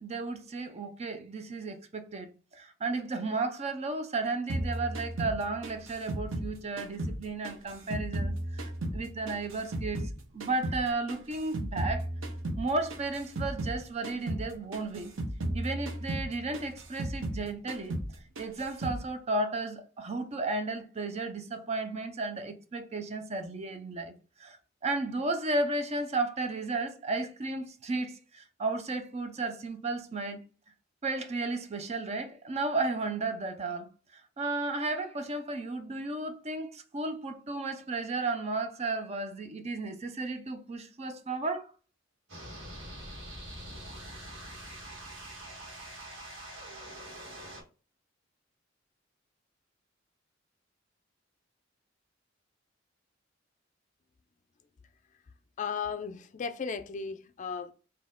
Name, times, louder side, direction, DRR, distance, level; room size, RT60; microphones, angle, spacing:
voice 1, 0.0-12.1 12.6-15.1 15.5-18.0 18.4-24.1 24.4-24.6 24.8-30.4 31.0-41.7, right 3 dB, 35° right, 0.5 m, -34 dB
sound 1, 4.5-7.2 7.4-10.1 10.4-13.8 14.0-14.5 14.7-17.4 17.7-18.1 18.4-19.0, right 1 dB, 85° right, 0.8 m, -35 dB
sound 2, 42.3-47.6, right 1 dB, 70° right, 1.6 m, -44 dB
voice 2, 55.6-57.7, left 6 dB, 40° left, 0.4 m, -35 dB
4.2 x 2.7 x 3.7 m
head